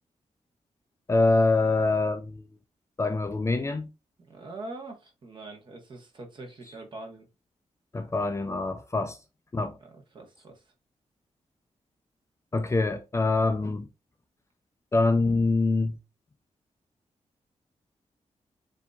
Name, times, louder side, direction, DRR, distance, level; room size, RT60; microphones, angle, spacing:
voice 1, 1.1-2.4 3.0-3.9 7.9-9.2 9.5-9.8 12.5-13.9 14.9-15.9, left 3 dB, 25° left, 0.5 m, -25 dB
voice 2, 4.2-7.3 9.8-10.6, right 2 dB, 40° right, 1.4 m, -43 dB
7.1 x 2.8 x 2.4 m
wide cardioid pair, 165°, 12 cm